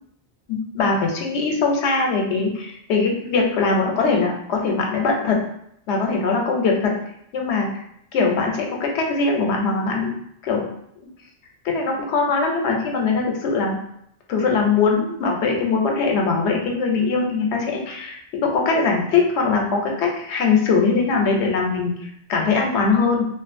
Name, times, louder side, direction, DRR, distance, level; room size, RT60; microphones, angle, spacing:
voice 1, 0.5-5.4 5.9-7.0 7.3-7.7 8.1-10.1 10.4-10.6 11.6-13.8 14.3-23.3, left 4 dB, 85° left, 1 dB, 0.9 m, -21 dB
2.5 x 2.3 x 2.5 m, 0.72 s
omnidirectional pair, 1.1 m